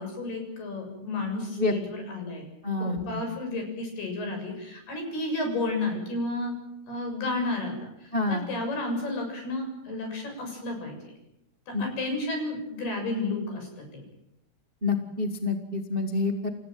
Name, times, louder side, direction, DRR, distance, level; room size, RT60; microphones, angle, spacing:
voice 1, 0.0-2.4 2.8-6.5 6.9-10.9 11.7-14.0, left 2 dB, 75° left, 3 dB, 9.1 m, -32 dB
voice 2, 2.6-3.2 8.1-8.5 11.7-11.8 14.8-16.5, left 3 dB, 65° right, 5 dB, 0.5 m, -27 dB
29.0 x 15.5 x 9.0 m, 0.82 s
omnidirectional pair, 4.6 m